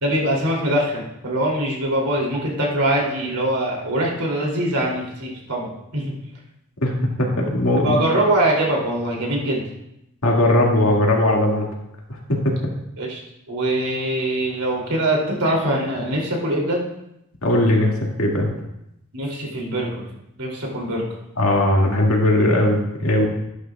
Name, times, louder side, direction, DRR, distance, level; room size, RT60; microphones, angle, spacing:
voice 1, 0.0-6.1 7.8-9.6 13.0-13.2 13.5-16.8 19.1-20.0 20.4-21.0, right 1 dB, 90° right, -2 dB, 3.0 m, -23 dB
voice 2, 7.2-8.0 10.2-11.7 12.3-12.5 17.4-17.9 18.2-18.5 21.4-23.3, left 1 dB, 65° left, -1 dB, 2.1 m, -18 dB
11.5 x 11.0 x 2.4 m, 0.83 s
head